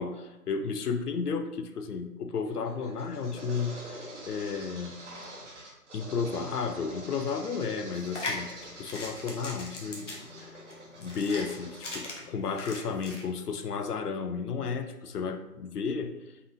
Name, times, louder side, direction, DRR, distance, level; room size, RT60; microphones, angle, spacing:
voice 1, 0.0-5.0 5.9-8.5 8.8-10.3 11.0-16.2, left 5 dB, 75° left, 8 dB, 0.6 m, -33 dB
sound 1, 2.5-12.1, right 1 dB, 50° right, 1.1 m, -46 dB
sound 2, 7.9-13.2, left 2 dB, 50° left, 1.0 m, -39 dB
4.0 x 3.7 x 2.6 m, 1.0 s
figure-of-eight pair, 165°, 47 cm